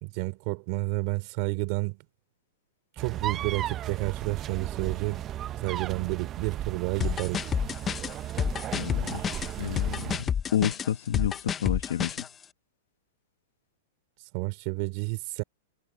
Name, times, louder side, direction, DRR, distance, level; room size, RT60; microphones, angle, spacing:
voice 1, 0.0-2.0 3.0-5.2 5.6-7.4 14.3-15.4, right 28 dB, 45° right, 3.8 m, -30 dB
sound 1, 3.0-10.3, right 12 dB, 25° right, 0.7 m, -35 dB
sound 2, 7.0-12.3, left 8 dB, 20° left, 0.6 m, -29 dB
voice 2, 8.7-12.3, left 10 dB, 80° left, 1.3 m, -30 dB
hypercardioid pair, 145°, 0 cm